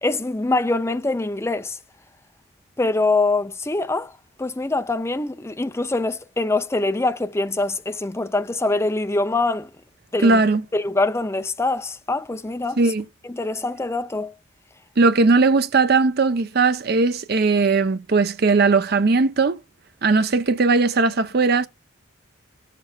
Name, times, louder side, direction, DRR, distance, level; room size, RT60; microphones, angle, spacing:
voice 1, 0.0-1.8 2.8-4.1 4.4-9.7 10.1-10.4 10.7-12.8 13.2-14.3, left 2 dB, 15° left, 0.4 m, -24 dB
voice 2, 10.2-10.6 12.8-13.0 15.0-19.6 20.0-21.7, right 3 dB, 50° right, 0.6 m, -18 dB
17.5 x 6.7 x 2.3 m
head